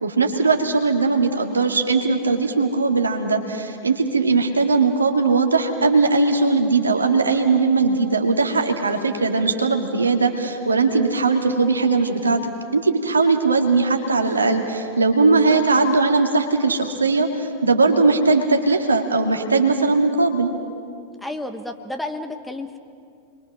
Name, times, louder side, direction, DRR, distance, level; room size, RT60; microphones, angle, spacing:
voice 1, 0.0-12.4 12.7-20.5, right 3 dB, 75° right, 3 dB, 2.2 m, -19 dB
voice 2, 21.2-22.8, left 1 dB, 5° left, 6 dB, 1.5 m, -31 dB
30.0 x 23.0 x 6.2 m, 2.3 s
figure-of-eight pair, 90°, 0 cm